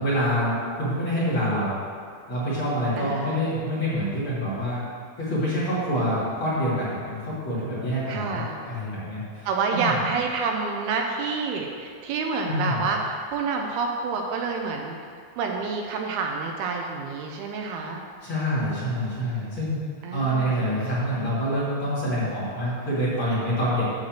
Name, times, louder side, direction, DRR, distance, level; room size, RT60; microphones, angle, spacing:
voice 1, 0.0-1.7 2.3-4.8 5.2-10.0 12.5-12.8 18.2-19.8 20.1-23.8, equal, 35° left, -10 dB, 3.2 m, -26 dB
voice 2, 3.0-3.5 8.1-8.6 9.5-15.0 15.4-18.0 20.0-20.6, right 4 dB, 80° right, 1 dB, 2.6 m, -28 dB
10.5 x 4.6 x 7.5 m, 2.2 s
omnidirectional pair, 4.7 m